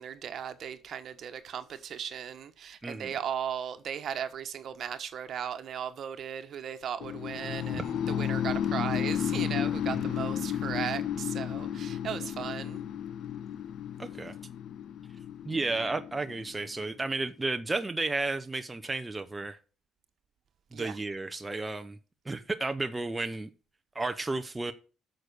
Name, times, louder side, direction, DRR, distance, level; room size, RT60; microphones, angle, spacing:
voice 1, 0.0-12.8 20.7-21.0, right 8 dB, 55° right, 1.3 m, -37 dB
voice 2, 2.8-3.1 7.7-7.8 9.9-10.2 14.0-14.3 15.5-19.6 20.7-22.0 22.3-23.5 23.9-24.7, right 3 dB, 15° right, 0.7 m, -33 dB
sound 1, 7.0-17.0, left 9 dB, 65° left, 0.7 m, -33 dB
8.8 x 6.6 x 6.8 m
cardioid pair, 120°, 0 cm